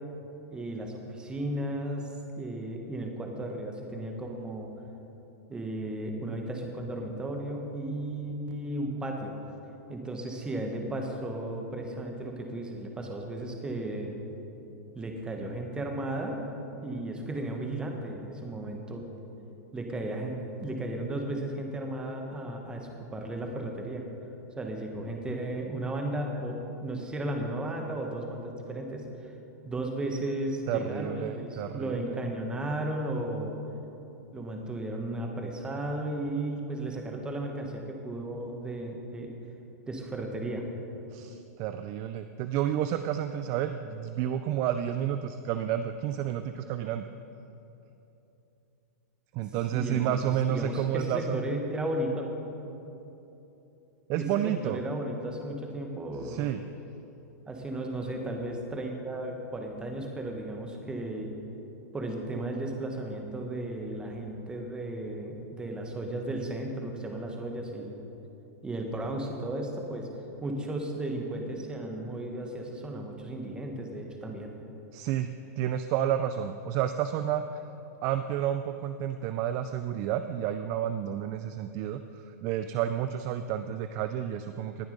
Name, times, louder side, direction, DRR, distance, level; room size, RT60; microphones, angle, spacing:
voice 1, 0.5-2.1 2.3-4.7 5.5-9.3 9.9-14.2 14.9-16.5 16.8-19.0 19.7-24.0 24.6-29.3 29.6-33.6 34.3-39.3 39.9-40.6 49.7-52.3 54.1-56.5 57.5-61.3 61.9-68.0 68.6-70.1 70.4-74.5, right 1 dB, 10° right, 2 dB, 1.3 m, -34 dB
voice 2, 30.7-32.2 41.1-47.1 49.3-51.4 54.1-54.8 56.2-56.6 74.9-75.3 75.6-77.6 78.0-84.9, right 10 dB, 30° right, 9 dB, 0.4 m, -30 dB
19.0 x 7.1 x 5.2 m, 3.0 s
hypercardioid pair, 155°, 9 cm